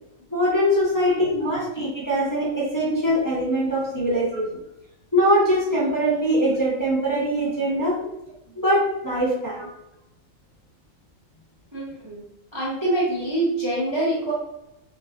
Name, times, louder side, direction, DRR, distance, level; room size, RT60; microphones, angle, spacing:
voice 1, 0.3-4.5 5.1-8.0 8.5-9.7, equal, 15° left, -8 dB, 1.1 m, -22 dB
voice 2, 1.0-1.3 1.6-1.7 9.6-9.7 11.7-12.2 12.5-14.3, right 1 dB, 20° right, -7 dB, 1.0 m, -26 dB
6.5 x 2.6 x 2.4 m, 0.87 s
omnidirectional pair, 1.4 m